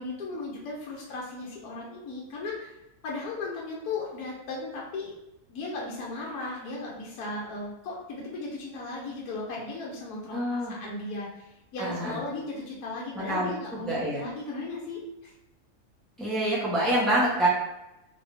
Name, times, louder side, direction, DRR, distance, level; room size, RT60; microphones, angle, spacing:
voice 1, 0.0-2.7 3.0-5.1 5.5-15.3, left 3 dB, 75° left, -3 dB, 1.2 m, -36 dB
voice 2, 10.3-10.7 11.8-12.2 13.1-14.2 16.2-17.5, right 1 dB, ahead, -7 dB, 0.6 m, -27 dB
3.1 x 2.6 x 3.0 m, 0.93 s
omnidirectional pair, 1.6 m